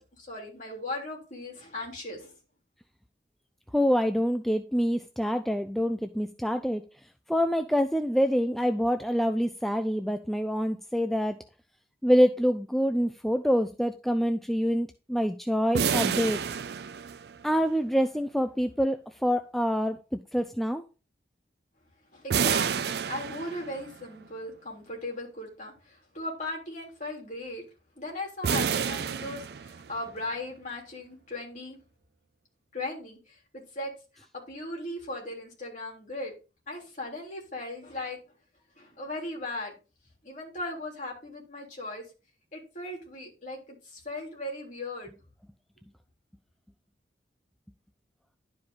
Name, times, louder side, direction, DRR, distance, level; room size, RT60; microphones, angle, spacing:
voice 1, 0.0-2.3 22.1-27.6 28.0-31.8 32.7-36.3 36.7-38.2 38.8-39.7 40.2-42.0 42.5-45.1, left 1 dB, 45° left, 3.3 m, -38 dB
voice 2, 3.7-6.8 7.3-11.4 12.0-16.4 17.4-20.8, equal, ahead, 0.4 m, -26 dB
sound 1, 15.7-17.6 22.3-23.9 28.4-30.1, right 7 dB, 60° right, 0.4 m, -29 dB
11.0 x 4.8 x 3.9 m
head